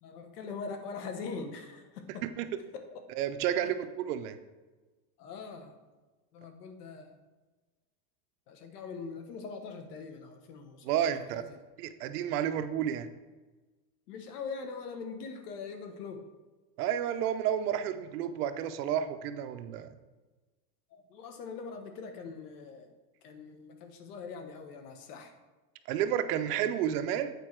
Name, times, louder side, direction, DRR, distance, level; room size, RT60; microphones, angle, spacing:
voice 1, 0.0-2.2 2.9-3.0 3.5-3.7 5.2-5.8 6.3-7.2 8.5-11.6 14.1-16.2 20.9-22.9 23.2-25.3, left 5 dB, 90° left, 6 dB, 1.3 m, -42 dB
voice 2, 3.2-4.4 10.8-11.4 11.8-13.1 16.8-20.0 25.9-27.3, right 10 dB, 85° right, 9 dB, 0.8 m, -31 dB
8.3 x 4.6 x 4.5 m, 1.2 s
supercardioid pair, 155°, 45 cm